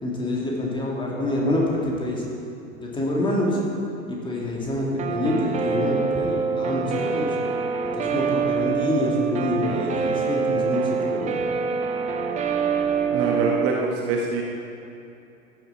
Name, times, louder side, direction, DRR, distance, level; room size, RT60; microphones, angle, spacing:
voice 1, 0.0-2.2 2.8-3.6 4.1-7.4 7.9-11.4, left 1 dB, 10° left, -3 dB, 2.3 m, -26 dB
Guitar, 5.0-13.7, right 6 dB, 15° right, 0.7 m, -25 dB
voice 2, 13.1-14.4, right 3 dB, 35° right, -1 dB, 1.3 m, -25 dB
14.5 x 9.5 x 4.5 m, 2.8 s
figure-of-eight pair, 95°, 42 cm